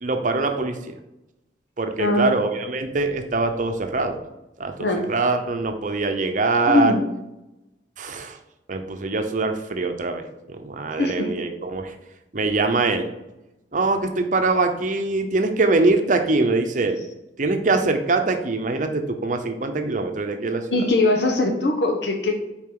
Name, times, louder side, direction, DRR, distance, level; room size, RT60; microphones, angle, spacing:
voice 1, 0.0-0.9 1.8-4.2 4.6-6.9 8.0-8.4 8.7-11.9 12.3-13.1 13.7-17.0 17.4-20.8, right 3 dB, 45° right, 6 dB, 0.8 m, -23 dB
voice 2, 2.0-2.4 4.8-5.1 6.7-7.1 11.0-11.3 20.7-22.4, left 2 dB, 70° left, 2 dB, 1.0 m, -21 dB
7.5 x 4.6 x 3.9 m, 0.96 s
head